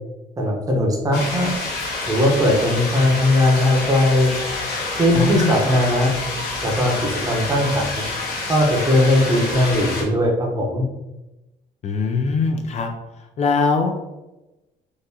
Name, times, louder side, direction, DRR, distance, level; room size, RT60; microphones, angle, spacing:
voice 1, 0.4-1.5 2.1-4.3 5.0-6.1 6.6-6.9 7.2-7.9 8.5-10.8, left 1 dB, 20° right, 0 dB, 0.8 m, -18 dB
sound 1, 1.1-10.0, left 3 dB, 65° left, 1.0 m, -28 dB
voice 2, 5.1-5.6 11.8-12.9 13.4-14.0, left 4 dB, 40° left, 4 dB, 0.4 m, -21 dB
3.8 x 2.4 x 2.7 m, 0.99 s
cardioid pair, 110°, 17 cm